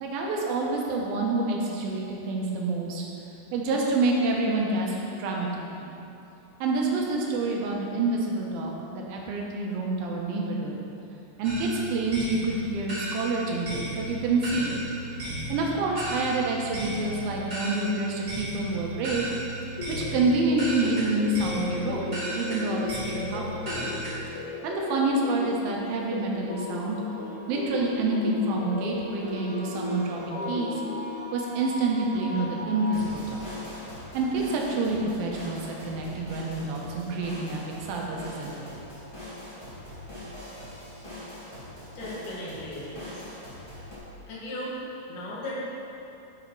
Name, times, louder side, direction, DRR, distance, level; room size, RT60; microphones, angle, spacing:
voice 1, 0.0-3.0 3.5-5.5 5.8-5.9 6.6-10.8 11.4-14.8 15.2-19.3 19.9-23.9 24.6-27.0 27.5-30.8 31.3-33.4 34.1-35.6 35.9-37.6 37.9-38.6, right 2 dB, 80° right, -1 dB, 2.9 m, -28 dB
sound 1, 11.4-24.1, right 1 dB, 25° right, 1.9 m, -35 dB
sound 2, 19.8-31.0, left 5 dB, 75° left, 1.7 m, -36 dB
sound 3, 26.5-44.0, left 1 dB, 15° left, 1.1 m, -41 dB
voice 2, 41.9-43.2 44.3-44.7 45.1-45.5, left 1 dB, 60° left, -6 dB, 3.2 m, -37 dB
11.5 x 5.7 x 4.7 m, 2.9 s
omnidirectional pair, 4.3 m